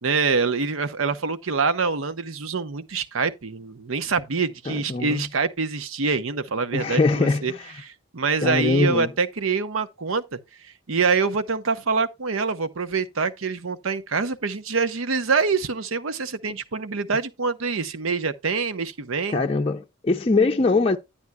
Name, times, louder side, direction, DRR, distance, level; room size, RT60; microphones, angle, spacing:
voice 1, 0.0-7.5 7.8-10.4 10.9-19.4, right 4 dB, 90° right, 0.8 m, -25 dB
voice 2, 4.7-5.2 6.7-7.6 8.4-9.1 19.3-21.0, left 3 dB, 30° left, 0.5 m, -22 dB
11.0 x 8.7 x 2.2 m
head